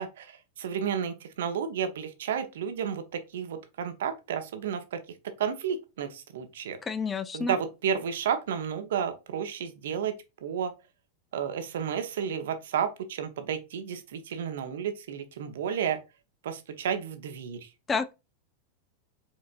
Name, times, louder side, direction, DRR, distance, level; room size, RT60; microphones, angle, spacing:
voice 1, 0.0-5.0 5.4-6.8 7.3-10.1 10.4-10.7 11.3-16.0 16.4-17.7, right 8 dB, 60° right, 0.8 m, -32 dB
voice 2, 6.8-7.5 17.9-18.1, left 5 dB, 15° left, 0.4 m, -29 dB
4.6 x 4.2 x 2.5 m
figure-of-eight pair, 90°, 0 cm